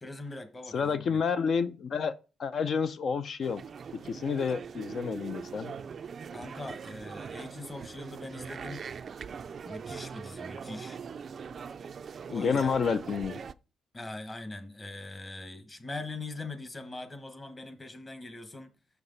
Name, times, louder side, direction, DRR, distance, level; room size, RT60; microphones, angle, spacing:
voice 1, 0.0-1.2 6.3-8.8 9.6-11.0 12.3-12.7 13.9-18.7, left 2 dB, 20° left, 1.1 m, -41 dB
voice 2, 0.7-2.1 2.4-3.6 3.9-5.7 12.3-13.4, left 6 dB, 50° left, 0.5 m, -29 dB
sound 1, 3.4-13.5, right 6 dB, 45° right, 0.4 m, -42 dB
6.3 x 5.9 x 3.9 m
cardioid pair, 115°, 0 cm